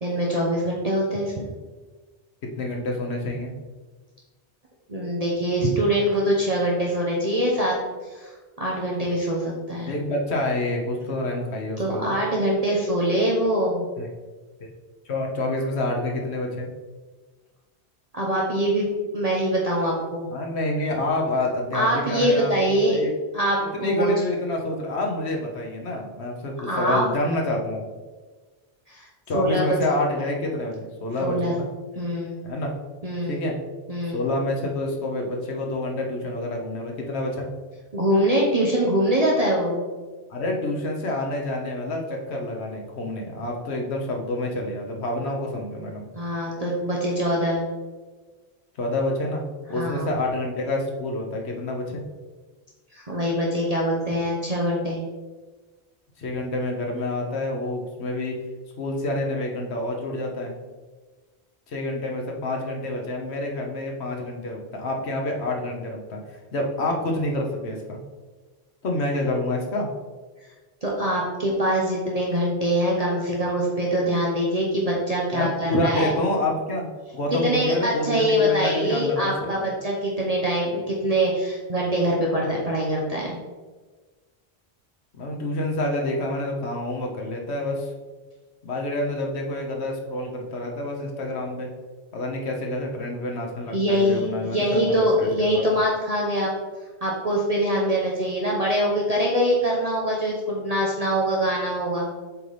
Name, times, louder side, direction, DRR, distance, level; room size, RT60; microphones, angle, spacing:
voice 1, 0.0-1.5 4.9-7.8 8.1-9.9 11.8-13.9 18.1-20.3 21.7-23.0 23.3-24.1 26.7-27.0 28.9-29.1 29.3-29.8 31.2-31.5 32.0-32.4 33.0-33.4 33.9-34.2 37.9-39.8 46.2-47.6 49.8-50.1 52.9-55.0 70.8-76.1 77.4-83.4 93.7-96.5 97.0-102.1, equal, 40° right, -3 dB, 0.9 m, -23 dB
voice 2, 2.6-3.5 9.8-12.2 14.0-14.1 14.6-14.7 15.0-16.7 20.3-23.1 23.8-27.8 29.3-31.7 32.4-32.7 33.3-33.6 34.1-37.5 40.3-46.1 48.8-49.4 49.7-52.0 56.2-58.4 58.8-60.5 61.7-68.0 68.8-69.9 75.3-76.9 77.1-79.7 85.1-87.9 88.6-91.7 92.1-95.6, left 1 dB, 80° left, 0 dB, 1.3 m, -28 dB
7.5 x 4.0 x 3.4 m, 1.3 s
omnidirectional pair, 1.1 m